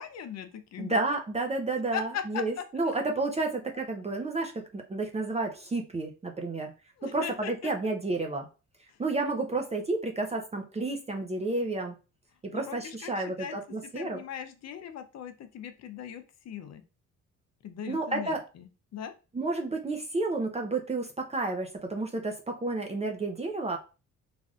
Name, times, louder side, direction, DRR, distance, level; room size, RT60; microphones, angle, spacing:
voice 1, 0.0-1.0 1.9-2.9 7.0-7.7 8.9-9.0 12.5-13.6 13.9-16.8 17.6-19.1, left 8 dB, 60° left, 9 dB, 0.6 m, -39 dB
voice 2, 0.8-6.7 7.0-8.5 9.0-11.9 12.5-14.2 17.9-18.4 19.3-23.8, right 2 dB, 20° right, 2 dB, 0.5 m, -31 dB
3.3 x 2.5 x 2.4 m, 0.31 s
cardioid pair, 90°, 30 cm